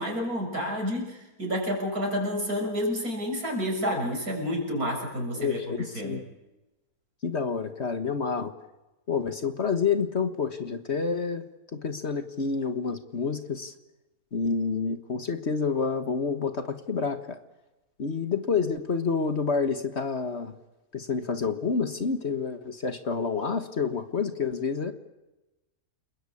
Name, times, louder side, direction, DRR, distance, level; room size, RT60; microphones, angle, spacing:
voice 1, 0.0-6.2, equal, 70° right, 1 dB, 7.3 m, -30 dB
voice 2, 5.4-6.2 7.2-8.5 9.1-11.4 11.7-13.7 14.3-17.4 18.0-20.5 20.9-24.9, left 5 dB, 45° left, 9 dB, 1.7 m, -28 dB
29.5 x 21.0 x 8.6 m, 1.0 s
omnidirectional pair, 1.6 m